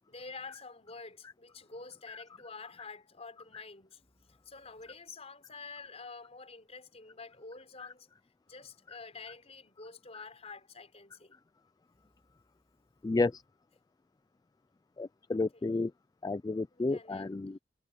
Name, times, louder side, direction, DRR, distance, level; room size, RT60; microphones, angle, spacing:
voice 1, 0.0-8.1 8.5-11.3 11.9-12.3 15.3-15.7 16.7-17.4, left 4 dB, 35° left, 5.7 m, -49 dB
voice 2, 13.0-13.4 15.0-15.9 16.2-17.6, left 3 dB, 20° left, 0.3 m, -32 dB
head